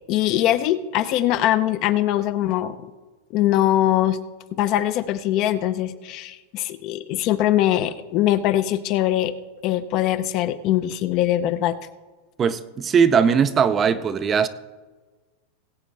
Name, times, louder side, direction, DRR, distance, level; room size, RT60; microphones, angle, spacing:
voice 1, 0.1-2.8 3.3-4.2 4.5-9.3 9.6-11.8, left 13 dB, 40° left, 0.6 m, -22 dB
voice 2, 12.4-14.5, right 6 dB, 20° right, 0.5 m, -19 dB
20.0 x 8.4 x 3.3 m
supercardioid pair, 150°, 0 cm